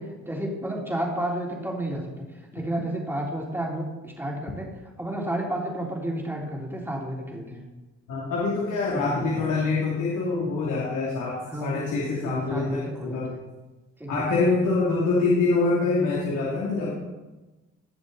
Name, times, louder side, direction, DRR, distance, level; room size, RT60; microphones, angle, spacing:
voice 1, 0.0-2.1 2.5-4.7 5.0-7.6 8.9-9.6 11.5-11.8 12.1-13.4 14.0-14.4, right 1 dB, 5° right, -2 dB, 3.4 m, -31 dB
voice 2, 8.1-13.3 14.1-16.9, left 3 dB, 80° left, -4 dB, 2.8 m, -25 dB
18.0 x 7.0 x 4.1 m, 1.1 s
cardioid pair, 90°, 30 cm